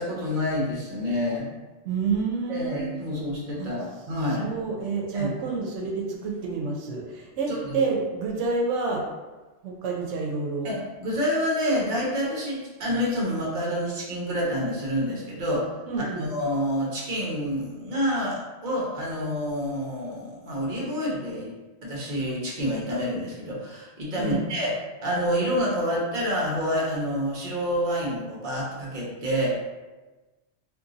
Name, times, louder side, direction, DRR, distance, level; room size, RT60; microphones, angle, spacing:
voice 1, 0.0-1.5 2.5-4.5 5.1-5.3 7.5-7.8 10.6-15.7 16.0-21.5 21.8-24.7 25.0-29.5, equal, 45° right, -4 dB, 1.0 m, -28 dB
voice 2, 1.8-2.9 3.6-3.7 4.4-9.0 9.6-10.7 15.9-16.3 24.2-24.5, right 4 dB, 90° right, -1 dB, 0.9 m, -28 dB
2.6 x 2.6 x 3.7 m, 1.2 s
omnidirectional pair, 1.2 m